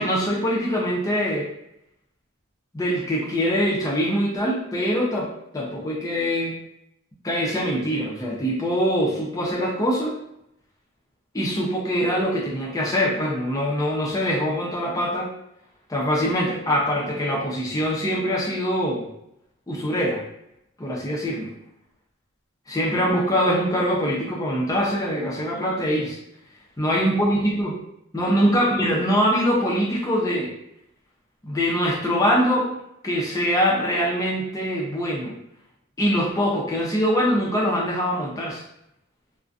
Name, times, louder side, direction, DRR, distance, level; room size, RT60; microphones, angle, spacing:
voice 1, 0.0-1.5 2.7-5.3 5.5-6.6 7.2-10.1 11.3-15.3 15.9-19.1 19.7-20.2 20.8-21.5 22.7-26.2 26.8-27.7 28.1-30.5 31.4-32.7 33.0-35.3 36.0-38.6, equal, 15° left, -2 dB, 0.4 m, -23 dB
2.5 x 2.1 x 2.4 m, 0.80 s
head